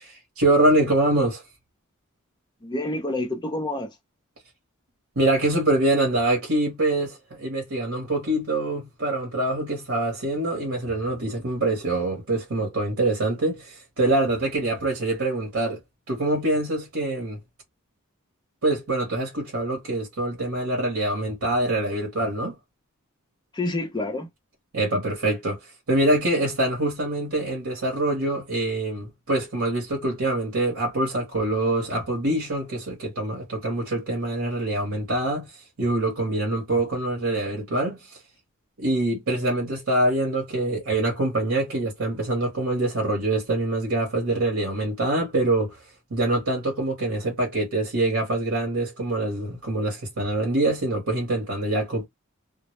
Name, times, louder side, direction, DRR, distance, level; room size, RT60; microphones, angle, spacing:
voice 1, 0.0-1.4 5.2-15.8 16.1-17.4 18.6-22.6 24.7-35.5 35.8-38.2 38.8-45.8 46.1-52.1, right 2 dB, 80° right, 0.9 m, -25 dB
voice 2, 2.6-3.9 23.5-24.3, left 2 dB, 20° left, 0.6 m, -28 dB
2.0 x 2.0 x 3.0 m
head